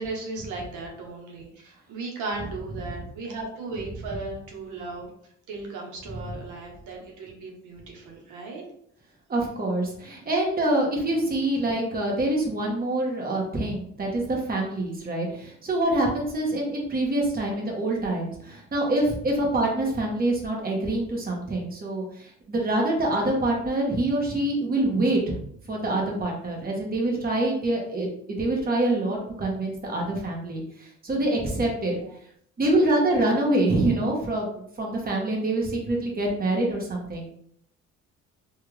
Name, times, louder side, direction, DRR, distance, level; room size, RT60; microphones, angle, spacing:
voice 1, 0.0-5.1 5.5-8.6 11.1-11.2 31.8-32.1, right 3 dB, 85° right, 0 dB, 0.9 m, -36 dB
voice 2, 9.3-25.3 25.7-31.9 32.6-37.3, right 1 dB, 30° right, -1 dB, 1.0 m, -25 dB
3.4 x 2.3 x 3.1 m, 0.68 s
cardioid pair, 90°, 30 cm